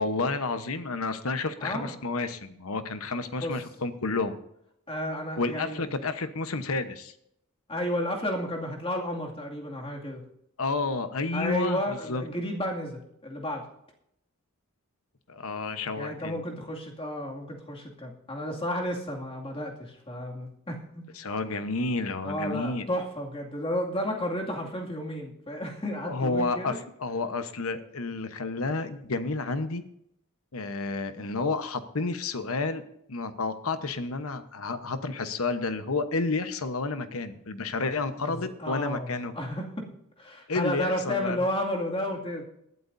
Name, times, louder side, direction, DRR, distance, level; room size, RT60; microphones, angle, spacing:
voice 1, 0.0-4.4 5.4-7.1 10.6-12.2 15.3-16.4 21.2-22.9 26.0-29.8 30.5-32.8 33.1-39.3 40.5-41.4, left 3 dB, 75° left, 10 dB, 1.1 m, -30 dB
voice 2, 1.6-1.9 3.4-3.6 4.9-5.8 7.7-10.2 11.3-13.7 15.9-21.0 22.2-26.8 38.2-39.9 40.2-42.5, equal, 25° left, 0 dB, 2.4 m, -32 dB
20.0 x 12.5 x 2.7 m, 0.76 s
head